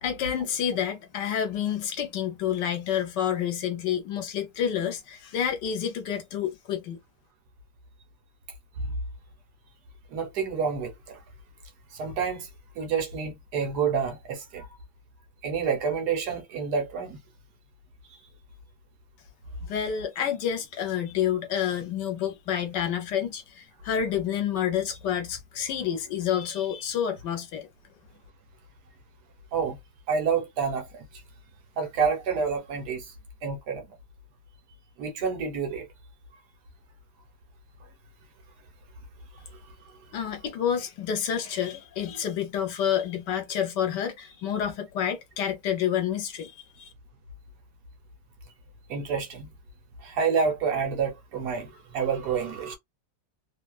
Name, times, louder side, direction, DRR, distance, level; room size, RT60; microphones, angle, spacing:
voice 1, 0.0-7.0 19.7-27.7 40.1-46.9, left 9 dB, 75° left, 1.4 m, -29 dB
voice 2, 10.1-11.2 11.9-12.5 12.7-14.7 15.4-17.2 29.5-29.8 30.1-31.0 31.8-33.1 33.4-33.9 35.0-35.9 48.9-49.5 50.0-52.8, right 6 dB, 65° right, 1.4 m, -28 dB
3.2 x 2.3 x 2.3 m
omnidirectional pair, 1.9 m